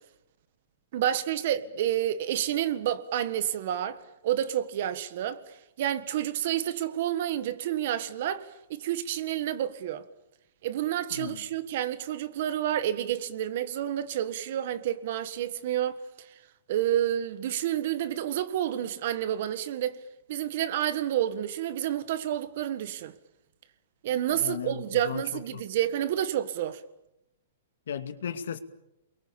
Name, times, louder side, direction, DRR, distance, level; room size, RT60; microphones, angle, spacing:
voice 1, 0.9-10.0 10.6-16.3 16.7-20.0 20.3-23.1 24.0-26.8, right 11 dB, 45° right, 1.6 m, -29 dB
voice 2, 11.1-11.5 24.3-25.6 27.9-28.6, left 8 dB, 75° left, 2.3 m, -36 dB
29.0 x 22.5 x 7.2 m
hypercardioid pair, 170°, 0 cm